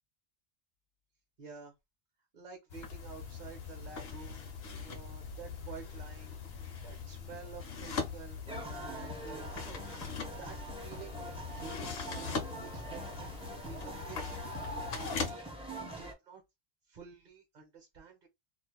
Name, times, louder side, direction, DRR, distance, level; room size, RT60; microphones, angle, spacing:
voice 1, 1.4-1.7 2.3-4.4 4.8-6.4 6.8-9.5 10.4-11.3 11.6-13.3 13.6-14.6 15.1-15.5 16.0-16.4 16.9-18.3, right 6 dB, 50° right, 0.7 m, -50 dB
sound 1, 2.7-15.3, left 5 dB, 65° left, 0.8 m, -41 dB
sound 2, 8.5-16.1, right 1 dB, 10° right, 0.3 m, -43 dB
2.4 x 2.0 x 2.9 m
omnidirectional pair, 1.2 m